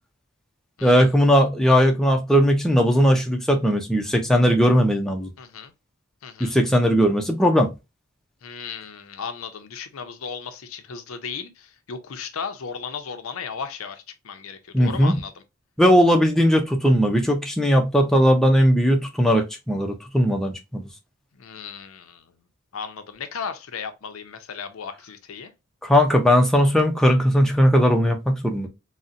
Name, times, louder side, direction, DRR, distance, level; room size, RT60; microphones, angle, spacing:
voice 1, 0.8-5.3 6.4-7.7 14.7-15.2 15.8-20.9 25.8-28.7, equal, ahead, 0.4 m, -18 dB
voice 2, 5.4-5.7 6.2-6.6 8.4-15.3 21.4-22.2 22.7-25.5, left 6 dB, 80° left, 0.6 m, -35 dB
3.9 x 2.1 x 2.4 m
head